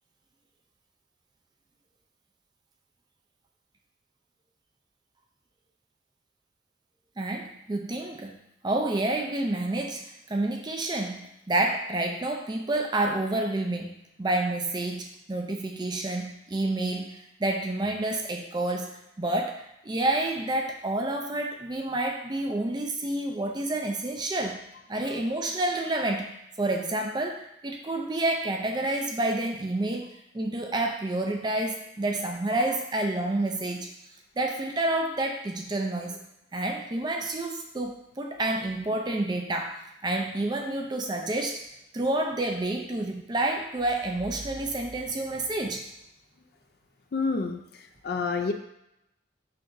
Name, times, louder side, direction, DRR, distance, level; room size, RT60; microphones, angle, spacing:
voice 1, 7.2-8.4 8.6-24.6 24.9-26.3 26.6-33.9 34.4-36.2 36.5-41.6 41.9-45.9, right 2 dB, 20° right, 2 dB, 0.4 m, -29 dB
voice 2, 47.1-47.6 48.0-48.5, left 4 dB, 55° left, 6 dB, 0.4 m, -27 dB
5.8 x 2.9 x 2.6 m, 0.83 s
head